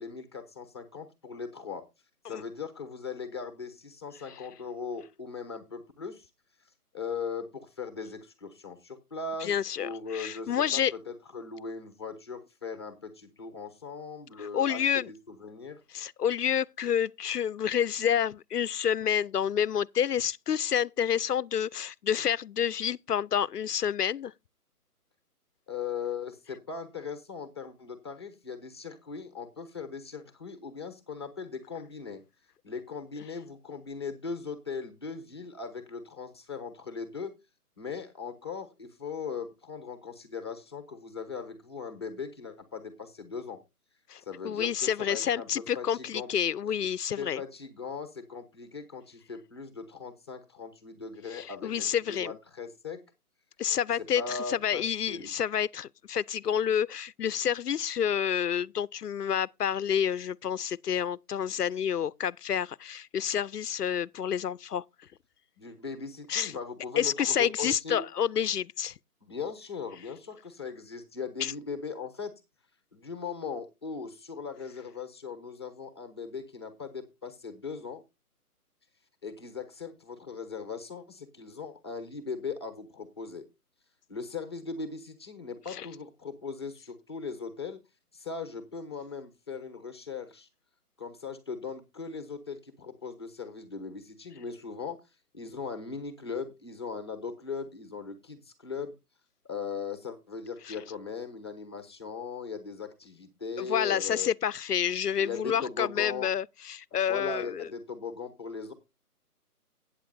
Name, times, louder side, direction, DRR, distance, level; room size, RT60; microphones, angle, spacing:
voice 1, 0.0-1.8 2.3-6.3 6.9-10.8 11.1-15.8 25.7-32.2 32.6-37.3 37.8-43.6 44.3-46.3 47.2-53.0 54.2-55.3 65.6-68.0 69.3-72.3 72.9-78.0 79.2-83.4 84.1-87.8 88.1-90.5 91.0-95.0 95.3-98.9 99.4-104.3 105.2-106.3 107.1-108.7, left 5 dB, 15° left, 0.9 m, -39 dB
voice 2, 9.4-10.9 14.4-15.1 15.9-24.3 44.1-47.4 51.3-52.4 53.6-64.8 66.3-66.6 66.9-68.9 71.4-71.5 85.7-85.9 100.7-100.8 103.6-107.7, left 8 dB, 85° left, 0.6 m, -29 dB
14.5 x 8.7 x 2.6 m
figure-of-eight pair, 160°, 46 cm